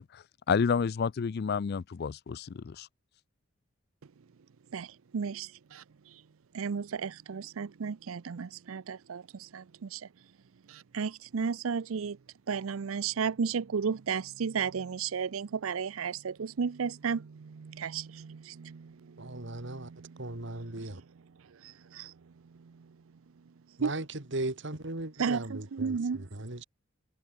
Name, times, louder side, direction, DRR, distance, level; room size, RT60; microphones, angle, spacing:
voice 1, 0.0-2.9, left 6 dB, 50° left, 0.4 m, -30 dB
voice 2, 4.7-5.8 6.5-10.1 10.7-12.2 12.5-20.2 21.6-22.1 22.5-22.9 23.8-23.9 25.2-26.2, right 6 dB, 80° right, 0.5 m, -34 dB
voice 3, 19.2-19.9 20.2-21.0 23.8-26.6, right 2 dB, 60° right, 2.3 m, -37 dB
head